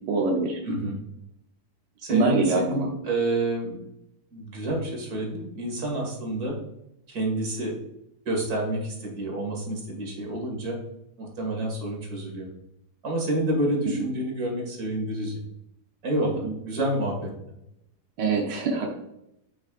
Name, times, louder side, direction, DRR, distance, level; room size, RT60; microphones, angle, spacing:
voice 1, 0.1-0.9 2.1-2.9 16.4-16.5 18.2-18.9, right 4 dB, 90° right, 0 dB, 1.6 m, -25 dB
voice 2, 0.6-1.0 2.0-3.8 4.3-6.6 7.1-7.8 8.3-10.8 11.2-12.5 13.0-15.4 16.0-17.3, right 1 dB, 60° right, 0 dB, 2.6 m, -28 dB
8.5 x 5.9 x 2.5 m, 0.82 s
omnidirectional pair, 1.8 m